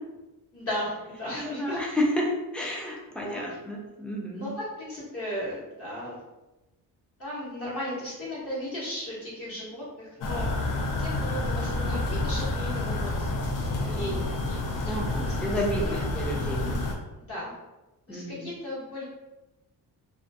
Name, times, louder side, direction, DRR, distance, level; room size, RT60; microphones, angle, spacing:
voice 1, 0.5-1.8 2.6-2.7 3.1-3.4 4.3-6.2 7.2-10.5 11.0-13.3 13.8-14.6 14.8-14.9 15.2-16.0 17.3-17.5 18.1-19.0, equal, 40° left, -7 dB, 1.0 m, -36 dB
voice 2, 1.4-4.5 14.9-16.7 18.1-18.5, equal, 5° left, -2 dB, 0.3 m, -31 dB
sound 1, 10.2-17.0, left 2 dB, 60° left, 0.5 m, -29 dB
2.3 x 2.3 x 2.6 m, 1.0 s
cardioid pair, 135°, 37 cm